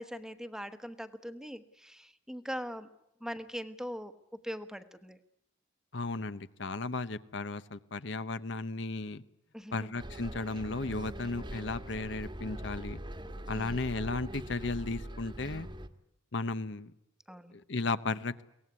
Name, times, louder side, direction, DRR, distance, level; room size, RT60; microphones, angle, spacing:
voice 1, 0.0-2.9 3.2-5.2 9.5-9.9 13.5-13.8 17.3-17.6, equal, 5° right, 11 dB, 1.2 m, -41 dB
voice 2, 5.9-9.2 9.7-13.0 13.5-15.7 16.3-16.9 17.5-18.4, left 3 dB, 60° left, 14 dB, 0.9 m, -35 dB
Bus, 10.0-15.9, right 1 dB, 25° right, 1.4 m, -42 dB
23.5 x 19.0 x 9.7 m, 0.83 s
head